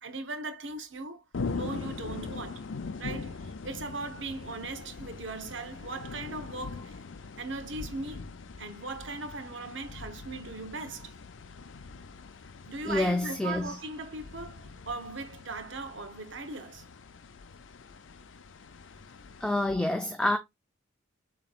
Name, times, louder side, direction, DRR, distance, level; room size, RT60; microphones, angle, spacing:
voice 1, 0.0-1.2 1.5-2.7 3.0-7.0 7.4-8.3 8.6-11.1 12.7-16.9 19.8-19.9, right 3 dB, 65° right, 1.0 m, -39 dB
sound 1, 1.3-19.7, left 4 dB, 70° left, 0.5 m, -42 dB
voice 2, 12.9-13.7 19.4-20.4, left 1 dB, 5° left, 0.5 m, -27 dB
7.2 x 3.0 x 2.4 m
head